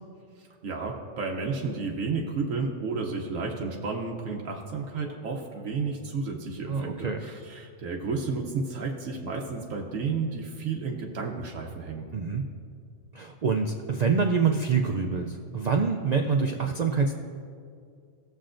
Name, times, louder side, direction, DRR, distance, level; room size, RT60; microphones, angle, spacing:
voice 1, 0.4-12.1, right 4 dB, 85° right, 0 dB, 1.2 m, -32 dB
voice 2, 6.7-7.2 12.1-12.4 13.1-17.1, right 5 dB, 65° right, 4 dB, 0.4 m, -26 dB
16.5 x 7.3 x 2.5 m, 2.2 s
omnidirectional pair, 1.3 m